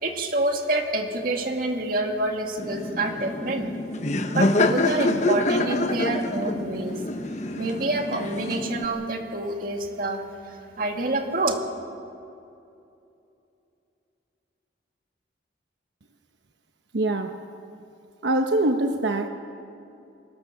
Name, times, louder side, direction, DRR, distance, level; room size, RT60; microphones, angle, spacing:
voice 1, 0.0-3.7 4.3-7.0 7.6-10.2 10.8-11.6, right 2 dB, 50° right, 3 dB, 2.3 m, -27 dB
Laughter, 2.6-8.9, left 2 dB, 40° left, 1.0 m, -26 dB
voice 2, 16.9-17.4 18.2-19.3, right 2 dB, 75° right, 5 dB, 1.0 m, -23 dB
25.0 x 19.0 x 7.2 m, 2.6 s
head